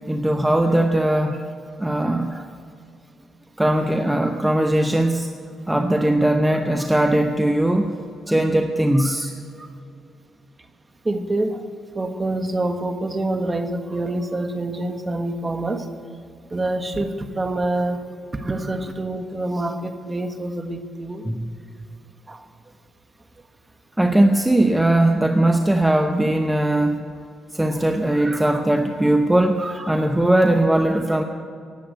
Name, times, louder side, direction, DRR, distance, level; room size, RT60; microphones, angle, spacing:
voice 1, 0.1-1.4 1.8-2.3 3.6-5.3 5.7-7.9 8.3-9.3 21.2-21.6 24.0-27.0 27.5-31.2, right 1 dB, 10° right, 5 dB, 0.9 m, -19 dB
voice 2, 11.0-11.7 11.9-15.8 16.5-18.0 18.3-21.2 22.3-22.4 27.6-27.8 28.2-29.2 29.6-29.9, right 2 dB, 25° right, 7 dB, 1.4 m, -27 dB
18.0 x 8.4 x 8.0 m, 2.4 s
cardioid pair, 90°, 0 cm